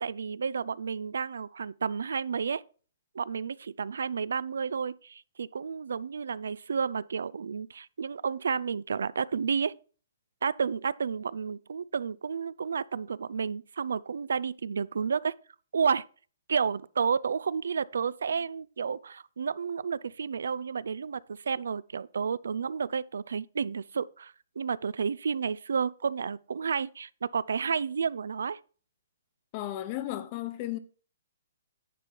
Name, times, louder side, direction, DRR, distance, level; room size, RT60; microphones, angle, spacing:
voice 1, 0.0-2.6 3.1-9.7 10.4-15.3 15.7-16.0 16.5-28.6, right 6 dB, 85° right, 0.4 m, -31 dB
voice 2, 29.5-30.8, left 14 dB, 25° left, 0.8 m, -34 dB
10.0 x 5.3 x 4.6 m
hypercardioid pair, 175°, 0 cm